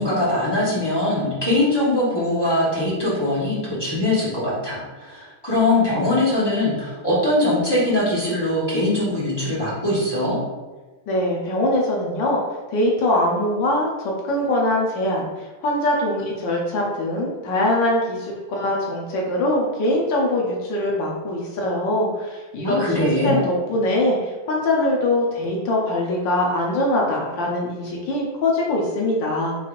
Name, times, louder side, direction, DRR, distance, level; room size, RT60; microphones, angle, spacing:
voice 1, 0.0-10.4 22.6-23.4, left 1 dB, 30° left, -9 dB, 0.4 m, -21 dB
voice 2, 11.1-12.4 12.7-29.6, left 1 dB, 70° left, -2 dB, 1.3 m, -22 dB
5.5 x 3.3 x 2.5 m, 1.2 s
omnidirectional pair, 2.3 m